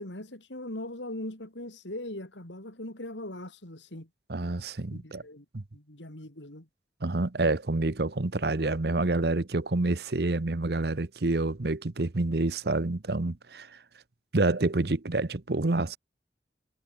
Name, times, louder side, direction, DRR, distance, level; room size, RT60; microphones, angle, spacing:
voice 1, 0.0-4.1 4.9-5.5 5.7-6.7, left 1 dB, 85° left, 4.2 m, -40 dB
voice 2, 4.3-5.2 5.5-5.6 7.0-13.7 14.3-16.0, right 2 dB, 60° right, 0.9 m, -28 dB
head